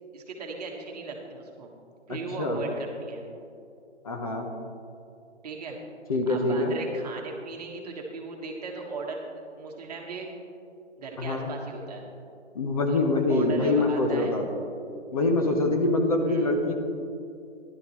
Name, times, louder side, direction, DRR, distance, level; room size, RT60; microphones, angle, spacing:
voice 1, 0.1-1.7 2.1-3.2 5.4-5.8 6.3-9.3 9.6-10.3 11.0-12.0 12.9-13.0 13.3-14.4 16.2-16.6, right 3 dB, 35° right, 0 dB, 1.6 m, -37 dB
voice 2, 2.1-2.6 4.0-4.5 6.1-6.7 11.2-11.5 12.5-14.4 15.1-16.7, left 2 dB, 30° left, 2 dB, 1.0 m, -25 dB
14.5 x 11.5 x 3.1 m, 2.6 s
hypercardioid pair, 155°, 35 cm